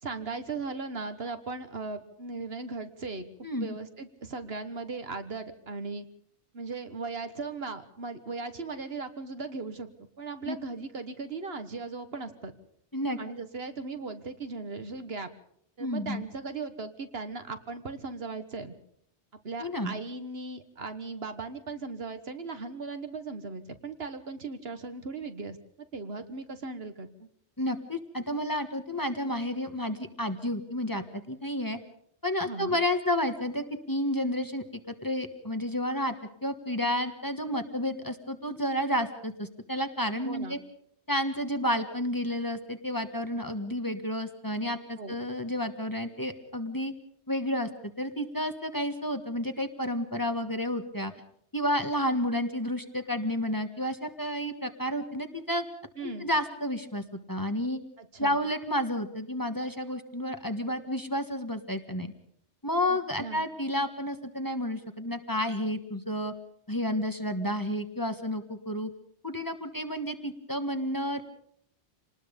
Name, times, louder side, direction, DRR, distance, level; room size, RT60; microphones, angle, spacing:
voice 1, 0.0-3.3 3.6-6.1 6.5-9.9 10.2-12.5 13.2-15.3 15.8-18.7 19.4-25.6 25.9-27.3 32.4-32.8 40.2-40.6 45.0-45.2 56.0-56.3 58.0-58.4 62.9-63.4, right 4 dB, 60° right, 9 dB, 1.7 m, -38 dB
voice 2, 3.4-3.8 10.4-10.6 12.9-13.2 15.8-16.2 19.6-19.9 27.6-31.8 32.2-36.1 36.4-40.6 41.1-46.9 47.3-47.7 48.0-51.1 51.5-55.6 56.0-57.8 58.2-62.1 62.6-66.3 66.7-68.9 69.2-71.2, left 1 dB, 20° left, 7 dB, 1.4 m, -31 dB
26.5 x 19.5 x 5.2 m, 0.69 s
omnidirectional pair, 1.1 m